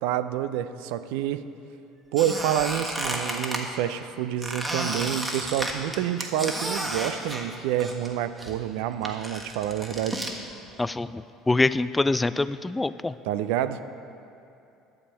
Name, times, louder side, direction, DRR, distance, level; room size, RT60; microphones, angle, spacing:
voice 1, 0.0-1.4 2.1-10.3 13.2-13.8, right 11 dB, 70° right, 12 dB, 0.4 m, -28 dB
Squeak, 2.1-3.6 4.4-8.1 8.4-10.3, right 1 dB, 20° right, 1.4 m, -32 dB
voice 2, 10.8-13.1, left 2 dB, 15° left, 15 dB, 0.3 m, -25 dB
11.5 x 7.0 x 5.6 m, 2.6 s
hypercardioid pair, 70°, 0 cm